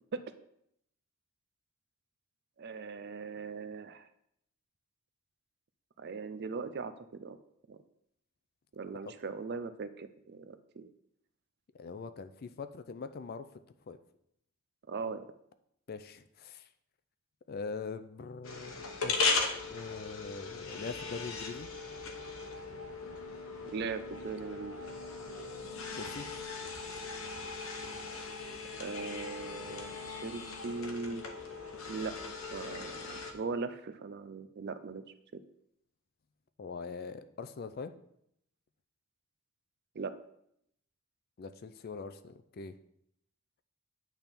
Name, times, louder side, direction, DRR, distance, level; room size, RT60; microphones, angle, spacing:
voice 1, 2.6-4.0 6.0-7.4 7.7-7.8 8.7-10.9 14.9-15.2 23.7-24.8 28.8-31.2 31.9-32.1 32.5-35.0 40.0-40.1, right 4 dB, 50° right, 11 dB, 0.4 m, -39 dB
voice 2, 11.8-13.5 13.9-14.0 15.9-16.7 17.5-21.7 25.9-26.3 36.6-37.9 41.4-42.7, left 4 dB, 45° left, 11 dB, 0.4 m, -42 dB
caffe machine, 18.4-33.3, left 4 dB, 65° left, 1.0 m, -38 dB
8.9 x 3.6 x 5.8 m, 0.75 s
head